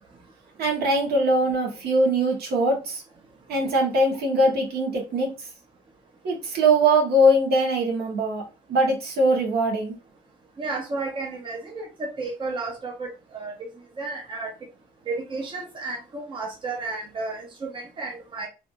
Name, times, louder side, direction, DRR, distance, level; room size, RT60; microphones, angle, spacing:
voice 1, 0.6-3.0 3.5-5.3 6.2-8.4 8.7-10.0, right 1 dB, 70° right, 0 dB, 1.3 m, -21 dB
voice 2, 10.6-13.7 14.0-14.5 15.1-18.5, right 3 dB, 30° right, 1 dB, 0.8 m, -32 dB
3.4 x 2.6 x 2.5 m, 0.29 s
cardioid pair, 110°, 17 cm